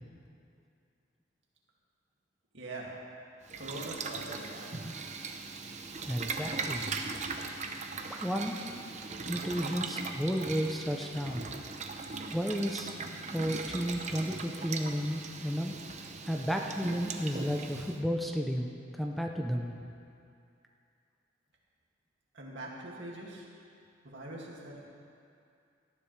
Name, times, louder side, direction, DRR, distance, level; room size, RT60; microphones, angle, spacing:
voice 1, 2.5-3.0 3.5-4.7 22.3-23.5 24.0-24.9, right 1 dB, 65° right, -3 dB, 2.3 m, -43 dB
Boiling, 3.4-18.0, right 4 dB, 40° right, 0.8 m, -39 dB
voice 2, 6.1-6.9 8.1-8.8 9.3-11.4 12.3-13.0 13.3-15.8 16.2-18.7 19.0-19.7, equal, ahead, 1 dB, 0.6 m, -32 dB
18.0 x 13.5 x 3.3 m, 2.5 s
head